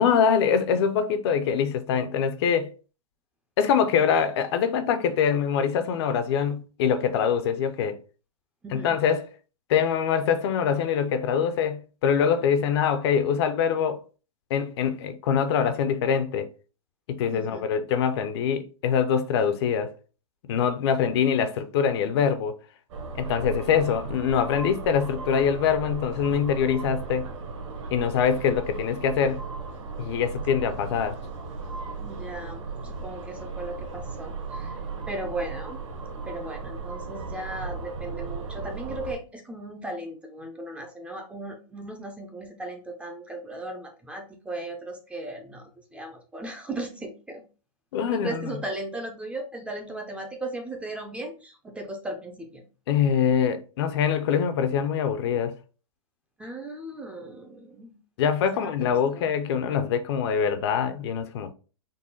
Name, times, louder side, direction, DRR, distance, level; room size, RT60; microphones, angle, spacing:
voice 1, 0.0-2.7 3.6-8.0 8.7-9.2 9.7-14.0 14.5-16.5 17.1-19.9 20.4-22.5 23.1-27.3 27.9-29.4 30.0-31.2 47.9-48.5 52.9-55.5 58.2-61.5, left 7 dB, 50° left, 0.5 m, -24 dB
voice 2, 8.6-9.0 17.3-17.6 32.0-34.8 35.1-35.8 36.2-47.4 48.1-52.6 56.4-58.0 58.5-59.2, right 2 dB, 5° right, 0.4 m, -37 dB
sound 1, 22.9-39.1, right 4 dB, 60° right, 1.2 m, -36 dB
3.9 x 2.1 x 3.7 m
hypercardioid pair, 140°, 17 cm